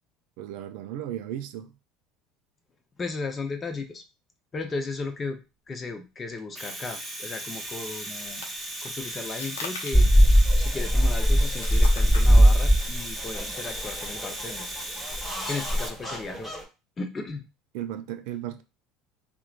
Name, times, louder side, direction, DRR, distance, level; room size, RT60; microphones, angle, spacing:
voice 1, 0.4-1.7 17.7-18.6, right 11 dB, 70° right, 0.3 m, -35 dB
voice 2, 3.0-4.0 4.5-5.4 5.7-8.4 8.8-10.1 10.5-14.7 15.5-16.5 17.0-17.5, left 3 dB, 30° left, 0.6 m, -35 dB
Domestic sounds home sounds, 6.4-15.9, right 1 dB, 15° right, 0.9 m, -37 dB
sound 1, 7.6-16.2, left 4 dB, 90° left, 0.6 m, -45 dB
sound 2, 9.9-16.6, equal, 10° left, 1.1 m, -21 dB
3.0 x 2.1 x 2.4 m
hypercardioid pair, 80°, 0 cm